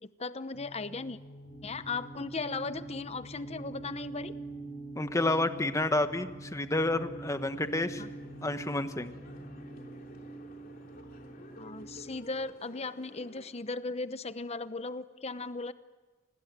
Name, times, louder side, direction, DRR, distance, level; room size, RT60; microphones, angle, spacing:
voice 1, 0.0-1.2 1.6-4.3 8.0-8.1 11.6-15.7, left 3 dB, 35° left, 13 dB, 0.9 m, -37 dB
sound 1, 0.5-9.9, equal, 85° left, 7.6 m, -49 dB
sound 2, 1.4-12.6, right 4 dB, 75° right, 4.2 m, -46 dB
voice 2, 5.0-8.0 8.4-9.1, left 2 dB, 15° left, 9 dB, 1.2 m, -30 dB
sound 3, 7.3-13.4, left 1 dB, 50° left, 3.0 m, -53 dB
25.5 x 20.0 x 8.1 m, 1.2 s
head